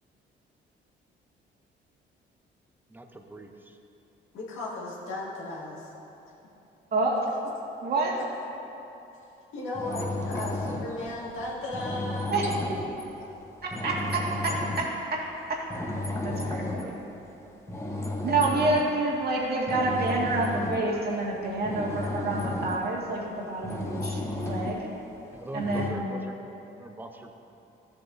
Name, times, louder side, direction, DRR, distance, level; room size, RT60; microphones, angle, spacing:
voice 1, 2.9-3.8 25.3-26.4 26.8-27.3, right 2 dB, 10° right, 4 dB, 0.7 m, -41 dB
voice 2, 4.3-5.9 9.5-12.3 13.2-13.3, left 2 dB, 85° left, -4 dB, 1.9 m, -35 dB
voice 3, 7.8-8.2 12.3-12.8 13.6-15.2 15.5-15.6 16.2-17.0 18.2-24.9 25.5-26.2, right 2 dB, 55° right, -3 dB, 1.9 m, -28 dB
sound 1, 9.7-15.0 15.5-17.4 17.7-18.9 19.3-22.9 23.4-24.9 25.6-25.9, left 2 dB, 15° left, 1.1 m, -33 dB
13.0 x 7.9 x 2.7 m, 2.9 s
cardioid pair, 90°, 20 cm